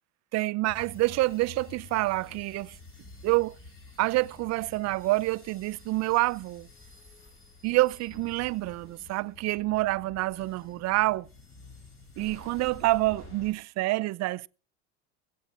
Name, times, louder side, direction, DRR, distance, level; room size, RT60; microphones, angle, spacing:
voice 1, 0.3-2.8 3.2-3.6 4.0-6.7 7.6-11.3 12.2-14.5, right 19 dB, 45° right, 0.5 m, -27 dB
sound 1, 0.6-13.5, left 3 dB, 35° left, 5.0 m, -50 dB
21.5 x 8.6 x 4.2 m
supercardioid pair, 100°, 36 cm